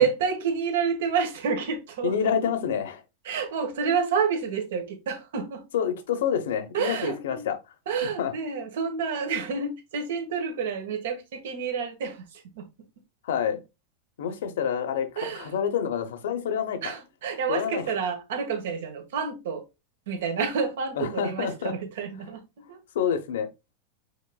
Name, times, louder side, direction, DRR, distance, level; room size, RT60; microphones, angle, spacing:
voice 1, 0.0-2.5 3.2-5.6 6.7-7.5 7.9-12.7 15.2-15.5 16.8-19.6 20.1-22.8, right 6 dB, 80° right, 1.4 m, -29 dB
voice 2, 2.0-3.0 5.7-7.6 8.2-8.3 13.2-13.6 14.2-16.8 17.5-17.8 21.0-21.7 22.9-23.5, left 8 dB, 85° left, 0.8 m, -27 dB
5.1 x 3.9 x 2.2 m
supercardioid pair, 145°, 0 cm